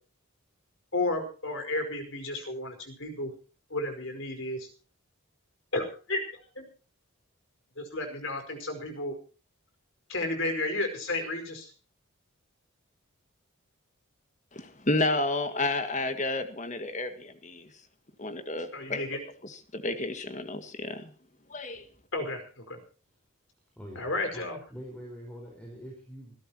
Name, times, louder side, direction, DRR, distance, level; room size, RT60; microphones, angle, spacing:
voice 1, 0.9-3.3 3.7-4.7 5.7-6.7 7.8-9.2 10.1-11.7 18.7-19.2 22.1-22.8 23.9-24.6, left 2 dB, 60° left, 6 dB, 4.9 m, -32 dB
voice 2, 14.5-17.7 18.2-19.0 19.7-21.1 21.5-21.9, left 2 dB, 35° left, 8 dB, 1.9 m, -31 dB
voice 3, 23.8-26.3, equal, 5° left, -1 dB, 4.6 m, -44 dB
26.5 x 13.0 x 2.9 m, 0.36 s
head